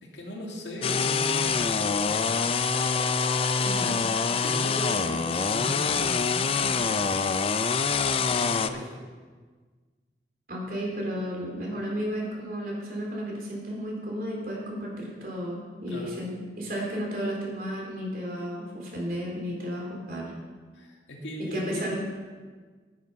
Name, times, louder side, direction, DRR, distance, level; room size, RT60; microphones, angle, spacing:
voice 1, 0.0-2.3 3.5-4.0 4.3-7.2 8.3-9.0 15.9-16.2 20.7-21.9, equal, 85° left, -1 dB, 2.3 m, -38 dB
sound 1, 0.8-8.7, left 5 dB, 30° left, 0.4 m, -25 dB
voice 2, 3.6-4.0 10.5-16.3 16.6-20.3 21.5-22.0, equal, 55° right, -2 dB, 3.7 m, -33 dB
9.6 x 9.5 x 5.7 m, 1.5 s
head